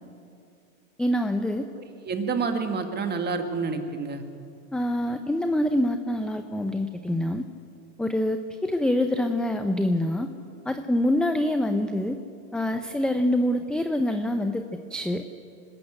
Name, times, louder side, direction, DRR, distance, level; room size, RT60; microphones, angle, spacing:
voice 1, 1.0-1.7 4.7-7.5 8.0-10.3 10.7-12.2 12.5-15.3, left 1 dB, ahead, 7 dB, 0.7 m, -25 dB
voice 2, 2.0-4.2, right 4 dB, 20° right, 6 dB, 2.2 m, -28 dB
24.5 x 13.0 x 9.0 m, 2.5 s
supercardioid pair, 125°, 43 cm